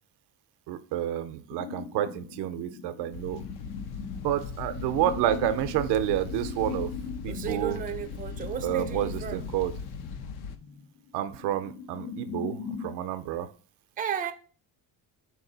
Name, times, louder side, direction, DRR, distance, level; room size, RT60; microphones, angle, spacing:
voice 1, 0.7-3.4 4.2-6.9 7.2-7.8 8.6-9.8 11.1-13.5, right 11 dB, 90° right, 0.6 m, -29 dB
sound 1, 1.5-13.0, left 6 dB, 90° left, 0.9 m, -41 dB
sound 2, 3.1-10.6, left 6 dB, 70° left, 0.6 m, -39 dB
voice 2, 7.3-9.5 14.0-14.3, right 9 dB, 20° right, 0.4 m, -34 dB
4.7 x 2.7 x 3.8 m
cardioid pair, 105°, 40 cm